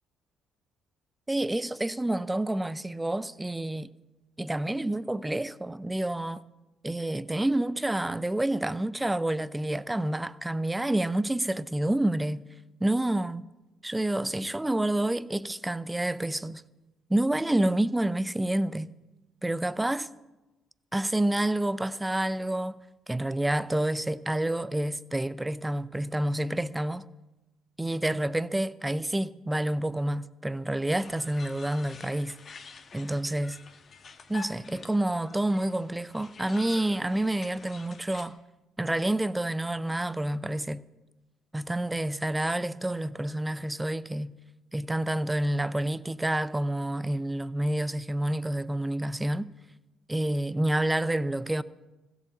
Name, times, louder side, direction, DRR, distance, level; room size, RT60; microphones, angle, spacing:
voice 1, 1.3-3.9 4.4-6.4 6.8-12.4 12.8-13.4 13.8-16.6 17.1-18.9 19.4-20.1 20.9-22.8 23.1-27.1 27.8-32.3 32.9-33.6 34.3-38.4 38.8-40.8 41.5-44.3 44.7-49.5 50.1-51.6, right 1 dB, 10° right, 0.6 m, -28 dB
sound 1, 30.9-38.3, left 5 dB, 45° left, 1.4 m, -48 dB
16.0 x 8.1 x 7.3 m
hypercardioid pair, 50°, 0 cm